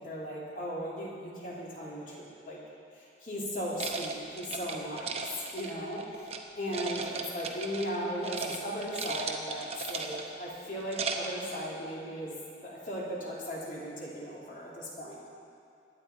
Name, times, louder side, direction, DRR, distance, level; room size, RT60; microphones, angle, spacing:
voice 1, 0.0-2.6 2.9-6.3 6.5-12.4 12.6-15.3, equal, 45° left, -5 dB, 2.9 m, -37 dB
sound 1, 3.8-6.4 6.7-8.0 8.2-8.6 8.8-10.4 10.8-11.4, right 4 dB, 35° right, 0.8 m, -36 dB
22.0 x 9.4 x 4.4 m, 2.5 s
head